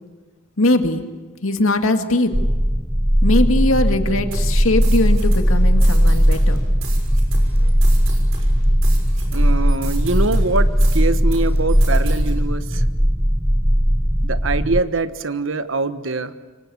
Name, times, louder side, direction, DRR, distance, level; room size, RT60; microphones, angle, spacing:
voice 1, 0.6-1.0 1.4-2.3 3.2-6.6, left 2 dB, 90° left, 6 dB, 2.2 m, -20 dB
sound 1, 2.3-14.8, equal, 5° right, 0.7 m, -17 dB
sound 2, 4.3-11.0 11.3-12.3, right 2 dB, 85° right, 6.2 m, -34 dB
voice 2, 9.3-12.8 14.2-16.3, right 3 dB, 70° right, 11 dB, 1.2 m, -23 dB
27.0 x 24.0 x 7.1 m, 1.4 s
head